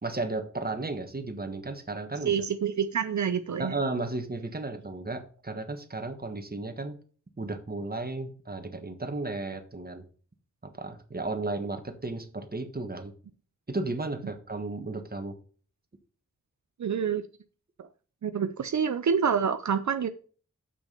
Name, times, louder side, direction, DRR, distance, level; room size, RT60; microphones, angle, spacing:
voice 1, 0.0-2.4 3.6-7.0 7.4-10.0 10.6-13.1 13.7-15.4, right 2 dB, 30° right, 1.3 m, -34 dB
voice 2, 2.3-3.7 16.8-17.2 18.2-20.1, right 7 dB, 70° right, 0.5 m, -27 dB
7.0 x 6.1 x 5.3 m
wide cardioid pair, 90°, 30 cm